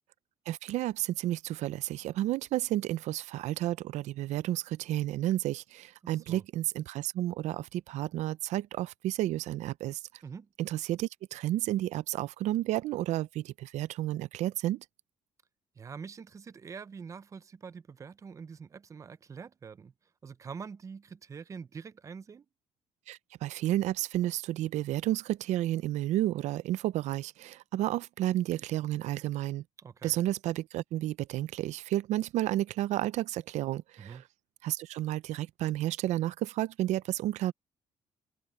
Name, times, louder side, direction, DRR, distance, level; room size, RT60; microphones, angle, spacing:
voice 1, 0.5-10.2 10.6-14.9 23.1-29.6 30.0-34.2 34.6-37.5, right 14 dB, 90° right, 0.5 m, -31 dB
voice 2, 6.0-6.4 10.2-10.5 15.8-19.9 20.2-22.5 29.8-30.1 34.0-34.2, right 6 dB, 25° right, 0.5 m, -45 dB
cardioid pair, 145°, 12 cm